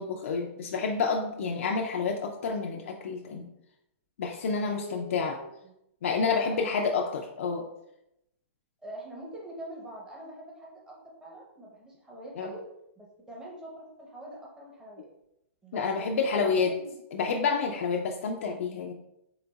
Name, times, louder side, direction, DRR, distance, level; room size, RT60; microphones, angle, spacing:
voice 1, 0.0-3.5 4.2-5.4 6.0-7.7 12.4-12.5 15.7-16.7 17.1-18.9, left 5 dB, 75° left, 1 dB, 0.4 m, -29 dB
voice 2, 4.6-5.7 6.3-6.8 8.8-10.9 11.2-12.6 13.0-15.1 15.6-17.0, right 1 dB, 10° right, -4 dB, 0.9 m, -44 dB
3.9 x 3.7 x 2.3 m, 0.81 s
hypercardioid pair, 130°, 7 cm